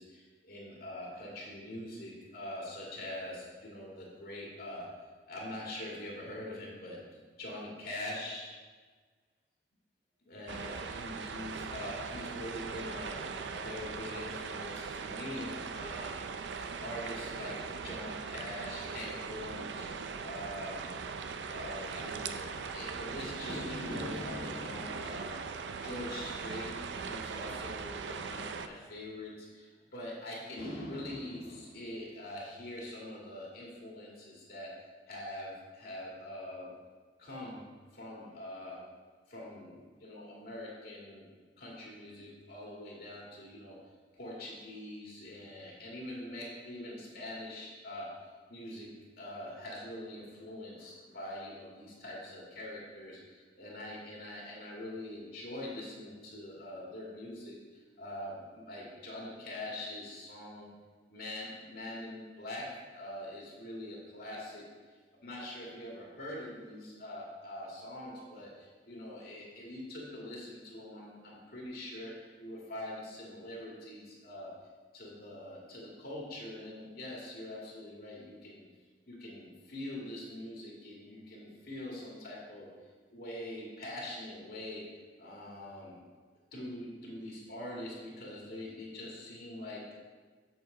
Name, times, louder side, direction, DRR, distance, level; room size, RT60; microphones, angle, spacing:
voice 1, 0.0-4.9 5.3-8.5 10.2-16.3 16.6-19.9 20.2-20.9 21.5-25.5 25.8-34.8 35.1-36.8 37.2-38.9 39.3-41.3 41.6-43.8 44.1-60.7 61.1-64.7 65.2-74.7 74.9-78.6 79.1-82.7 83.1-86.0 86.5-90.0, left 1 dB, 60° left, -4 dB, 2.1 m, -43 dB
sound 1, 10.5-28.7, right 5 dB, 80° right, 0.5 m, -40 dB
8.0 x 6.3 x 3.9 m, 1.5 s
head